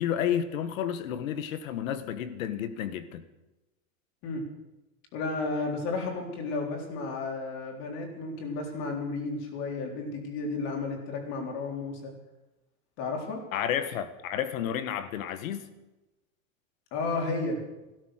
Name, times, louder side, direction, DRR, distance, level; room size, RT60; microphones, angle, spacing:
voice 1, 0.0-3.2 13.5-15.6, left 9 dB, 70° left, 11 dB, 1.7 m, -31 dB
voice 2, 5.1-12.1 13.0-13.4 16.9-17.6, left 3 dB, 40° left, 2 dB, 3.8 m, -32 dB
15.5 x 13.0 x 6.5 m, 1.0 s
supercardioid pair, 160°, 42 cm